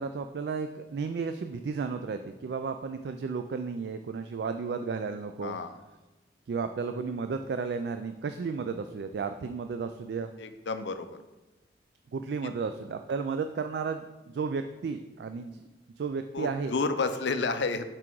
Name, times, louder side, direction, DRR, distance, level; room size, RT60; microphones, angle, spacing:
voice 1, 0.0-5.6 6.5-10.3 12.1-15.7 16.0-16.7, right 5 dB, 70° right, 8 dB, 0.3 m, -33 dB
voice 2, 5.4-5.7 10.4-11.1 16.3-17.9, left 4 dB, 85° left, 9 dB, 0.5 m, -30 dB
6.0 x 4.8 x 4.6 m, 1.1 s
head